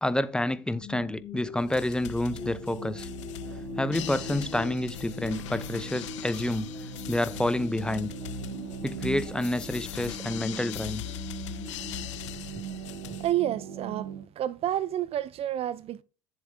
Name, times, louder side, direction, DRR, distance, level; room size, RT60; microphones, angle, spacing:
voice 1, 0.0-3.1 3.8-6.7 7.1-8.1 8.8-11.0, left 1 dB, 5° left, 0.7 m, -29 dB
sound 1, 0.7-12.9, left 5 dB, 20° left, 2.2 m, -44 dB
sound 2, 1.6-13.3, left 15 dB, 75° left, 0.5 m, -41 dB
sound 3, 2.3-14.2, right 7 dB, 80° right, 1.2 m, -41 dB
voice 2, 13.2-14.1 14.4-16.0, right 12 dB, 40° right, 0.5 m, -29 dB
11.0 x 7.4 x 2.6 m
hypercardioid pair, 75°, 16 cm